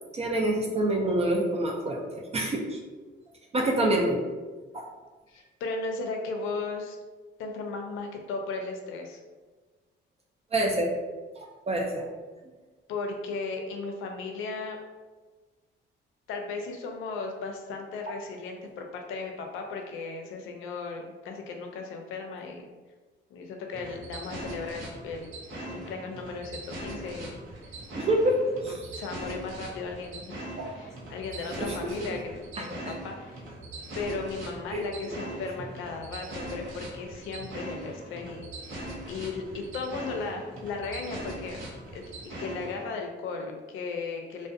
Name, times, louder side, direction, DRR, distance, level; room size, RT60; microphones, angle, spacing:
voice 1, 0.1-2.8 3.5-4.2 4.7-4.9 10.5-10.9 11.4-12.1 18.1-18.2 27.9-28.4 28.6-28.9 30.6-30.7 31.6-31.8 32.6-32.9 34.7-34.8, right 1 dB, 30° right, 0 dB, 0.4 m, -27 dB
voice 2, 5.3-7.0 7.4-9.2 12.9-14.8 16.3-22.7 23.3-27.4 27.7-27.8 28.7-30.4 30.8-33.4 34.0-41.6 41.9-44.5, left 4 dB, 90° left, 3 dB, 0.4 m, -36 dB
sound 1, 23.7-42.9, right 1 dB, 80° right, 0.6 m, -41 dB
2.5 x 2.1 x 2.5 m, 1.3 s
cardioid pair, 90°, 20 cm